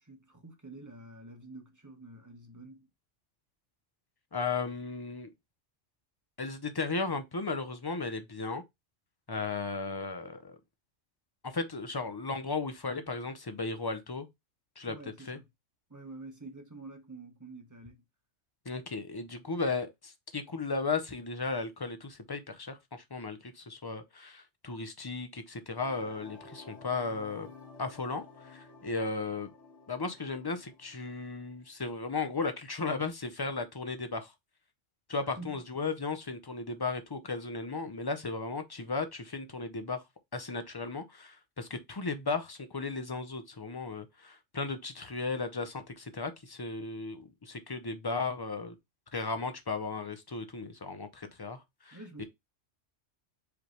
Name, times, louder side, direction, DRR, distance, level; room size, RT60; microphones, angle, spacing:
voice 1, 0.0-2.8 14.9-15.4 15.9-18.0 35.4-35.6 51.9-52.2, right 2 dB, 15° right, 0.9 m, -48 dB
voice 2, 4.3-5.3 6.4-8.6 9.3-10.6 11.4-14.3 14.8-15.0 15.3-15.4 18.7-27.5 27.8-29.5 29.9-34.3 35.1-40.0 40.3-48.7 49.1-52.2, left 4 dB, 30° left, 0.4 m, -35 dB
sound 1, 25.8-31.7, left 4 dB, 70° left, 2.1 m, -53 dB
5.0 x 3.3 x 3.0 m
omnidirectional pair, 1.3 m